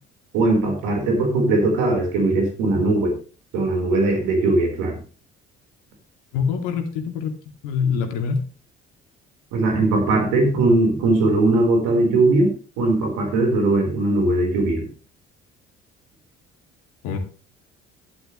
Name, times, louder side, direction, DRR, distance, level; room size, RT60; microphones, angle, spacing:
voice 1, 0.3-3.1 3.5-5.0 9.5-14.9, right 2 dB, 70° right, 3 dB, 4.6 m, -20 dB
voice 2, 6.3-7.3 7.6-8.4 17.0-17.2, left 6 dB, 65° left, 5 dB, 2.7 m, -24 dB
12.5 x 11.5 x 3.2 m, 0.36 s
figure-of-eight pair, 50°, 34 cm